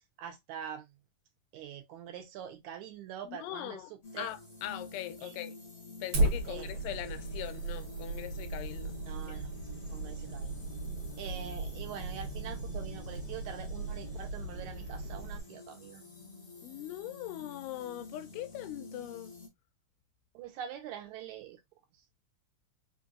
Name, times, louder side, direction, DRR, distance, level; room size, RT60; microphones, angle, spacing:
voice 1, 0.2-0.9 1.5-4.3 5.2-5.4 6.5-6.7 9.1-9.5 9.9-10.5 11.2-16.0 20.3-21.6, right 9 dB, 75° right, 2.0 m, -44 dB
voice 2, 3.2-3.9 4.2-5.6 6.0-9.0 9.3-9.4 16.6-19.3, left 13 dB, 85° left, 2.1 m, -41 dB
sound 1, 4.0-19.5, left 3 dB, 65° left, 0.6 m, -49 dB
Fire, 6.1-15.4, right 2 dB, 55° right, 1.8 m, -36 dB
5.2 x 2.7 x 2.3 m
omnidirectional pair, 3.7 m